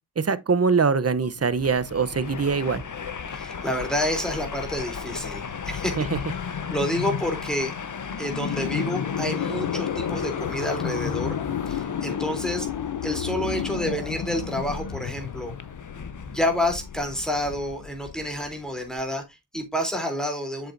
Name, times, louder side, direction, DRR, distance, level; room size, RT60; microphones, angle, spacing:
voice 1, 0.2-2.8 6.0-6.2, right 5 dB, 35° right, 0.8 m, -23 dB
sound 1, 1.1-18.9, left 8 dB, 85° left, 0.8 m, -33 dB
Train, 1.4-19.0, left 5 dB, 45° left, 1.0 m, -38 dB
voice 2, 3.3-6.1 6.4-7.7 8.2-11.4 11.7-12.7 13.0-15.5 16.2-20.7, equal, ahead, 3.3 m, -29 dB
7.8 x 6.9 x 2.6 m
cardioid pair, 60°, 40 cm